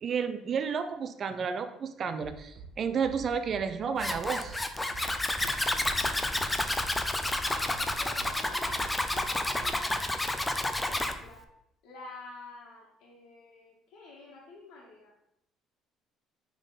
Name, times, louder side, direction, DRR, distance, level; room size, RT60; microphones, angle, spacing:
voice 1, 0.0-4.6, right 6 dB, 40° right, 9 dB, 0.6 m, -31 dB
Bass drum, 2.2-2.7 3.0-3.6 4.0-4.6 4.9-5.5 5.8-6.4 6.8-7.4 7.7-8.3 8.6-9.3 9.6-9.7, right 5 dB, 75° right, 1.5 m, -45 dB
Zipper (clothing), 4.0-11.1, left 1 dB, 10° left, 0.5 m, -30 dB
voice 2, 5.4-6.9 7.4-9.9 10.3-11.4 11.8-15.1, left 2 dB, 80° left, -6 dB, 1.8 m, -48 dB
8.7 x 3.8 x 4.0 m, 0.79 s
cardioid pair, 150°, 0 cm